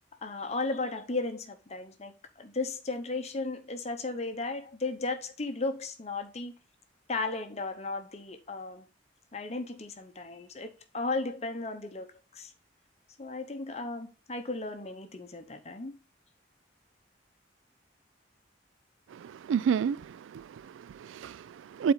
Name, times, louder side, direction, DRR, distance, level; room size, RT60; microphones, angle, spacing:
voice 1, 0.2-6.5 7.1-8.9 9.3-12.1 12.3-12.5 13.2-16.0, left 3 dB, 35° left, 0.8 m, -35 dB
voice 2, 19.1-21.9, right 7 dB, 85° right, 0.3 m, -31 dB
8.6 x 4.2 x 3.9 m
head